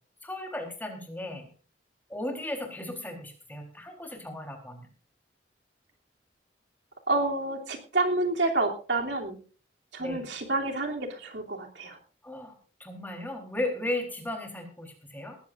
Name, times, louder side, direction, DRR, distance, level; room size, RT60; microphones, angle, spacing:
voice 1, 0.2-1.5 2.1-4.9 10.0-10.3 12.2-12.5 12.8-15.4, left 1 dB, 10° left, 3 dB, 3.9 m, -35 dB
voice 2, 7.1-9.4 9.9-12.0, right 2 dB, 75° right, 1 dB, 3.1 m, -29 dB
20.0 x 15.5 x 2.6 m, 0.40 s
head